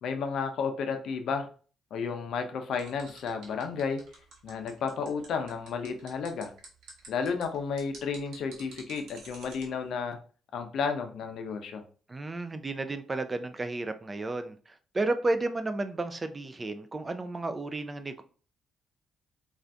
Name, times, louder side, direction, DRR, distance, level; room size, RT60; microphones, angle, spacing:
voice 1, 0.0-1.5 1.9-4.0 4.4-6.5 7.1-10.2 10.5-11.8, left 5 dB, 75° left, 0.5 m, -32 dB
sound 1, 2.7-9.7, right 3 dB, 80° right, 1.1 m, -49 dB
voice 2, 12.1-18.2, right 2 dB, 25° right, 0.3 m, -32 dB
2.5 x 2.4 x 3.3 m
cardioid pair, 90°, 0 cm